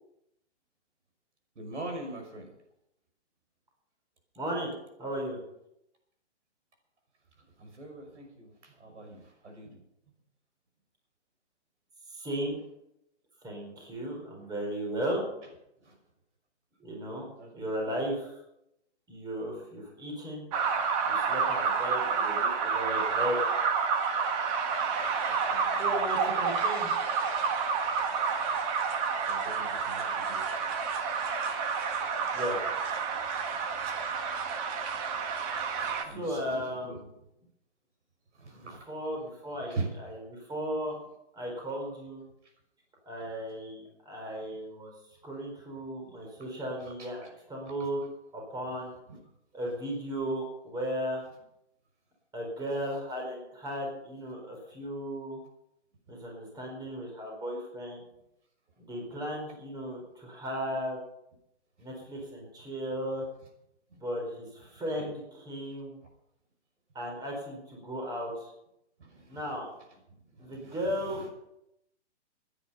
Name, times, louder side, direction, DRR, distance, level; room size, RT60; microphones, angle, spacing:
voice 1, 1.6-2.5 7.6-9.8 15.8-16.0 17.4-18.0 25.3-26.2 28.0-28.1 29.3-30.7 35.5-37.0 38.3-38.9 39.6-39.9 46.8-47.1 49.1-49.2 65.0-65.1 69.0-69.4 70.3-71.3, right 3 dB, 80° right, 3 dB, 5.9 m, -43 dB
voice 2, 4.4-5.4 12.1-12.6 13.4-15.2 16.8-17.3 17.5-18.3 19.1-20.5 21.0-23.4 25.8-27.0 32.3-32.6 36.0-37.1 38.5-41.0 41.3-42.2 43.1-44.9 45.2-48.0 48.3-48.9 49.5-51.2 52.3-55.4 56.1-58.0 58.8-61.0 61.8-63.2 64.0-66.0 66.9-68.5 69.3-69.7 70.4-71.3, equal, 10° right, 0 dB, 4.7 m, -35 dB
sound 1, 20.5-36.0, right 5 dB, 30° right, 1.7 m, -29 dB
18.5 x 10.0 x 5.7 m, 0.81 s
hypercardioid pair, 145°, 35 cm